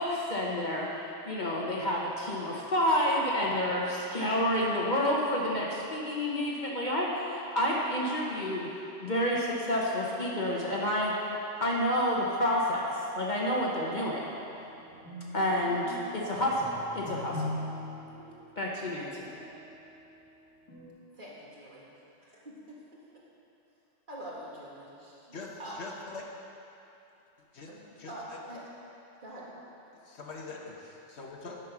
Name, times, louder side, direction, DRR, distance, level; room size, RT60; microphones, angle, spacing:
voice 1, 0.0-8.7 9.0-11.1 11.6-14.3 15.3-17.4 18.6-19.3, left 1 dB, 40° left, -4 dB, 1.1 m, -29 dB
sound 1, 14.4-20.2 20.7-20.9, left 1 dB, 25° left, 1.8 m, -41 dB
voice 2, 21.2-21.9 22.2-23.0 24.1-25.8 27.7-27.8 28.1-28.7 29.2-29.5, right 1 dB, 40° right, -7 dB, 2.0 m, -45 dB
voice 3, 25.3-26.3 27.5-28.4 29.9-31.6, left 3 dB, 60° left, -1 dB, 1.2 m, -44 dB
9.9 x 6.4 x 5.9 m, 2.9 s
omnidirectional pair, 1.3 m